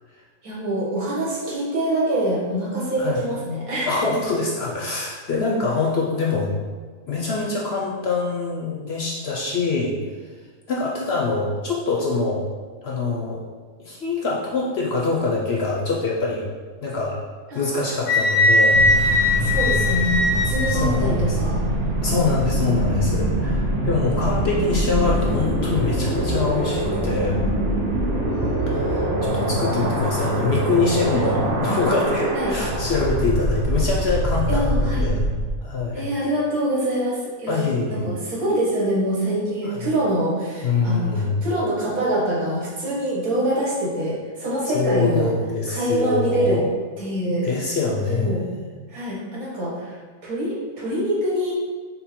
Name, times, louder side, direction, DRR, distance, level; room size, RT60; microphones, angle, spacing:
voice 1, 0.4-4.1 5.3-5.5 17.5-18.1 19.4-21.6 28.2-28.7 31.1-31.8 32.3-32.5 34.5-35.1 35.9-37.6 37.9-45.3 45.7-46.6 47.0-47.5 48.1-48.4 48.9-50.0 50.2-51.5, right 1 dB, 80° right, -5 dB, 1.8 m, -25 dB
voice 2, 3.9-6.5 7.1-10.0 10.7-12.4 12.8-13.4 13.8-16.4 16.8-17.2 17.5-19.3 20.6-21.4 22.0-27.4 28.7-35.2 35.6-36.1 37.5-38.1 39.6-39.9 40.6-41.3 44.7-46.7 47.4-48.7, left 3 dB, 60° left, -2 dB, 0.7 m, -24 dB
Wind instrument woodwind instrument, 18.1-20.9, left 2 dB, 80° left, 1.2 m, -19 dB
sound 1, 18.7-35.5, right 1 dB, 60° right, 1.0 m, -24 dB
5.3 x 2.1 x 4.3 m, 1.5 s
omnidirectional pair, 1.5 m